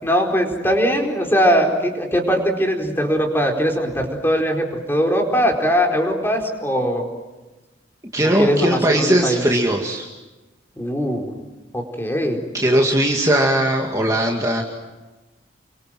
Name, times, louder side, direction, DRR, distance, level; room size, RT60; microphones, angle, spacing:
voice 1, 0.0-7.1 8.4-9.4 10.8-11.3 11.7-12.4, equal, 10° left, 2 dB, 4.6 m, -20 dB
voice 2, 8.1-10.1 12.5-14.6, right 1 dB, 15° right, 0 dB, 2.3 m, -19 dB
29.5 x 24.5 x 7.8 m, 1.1 s
head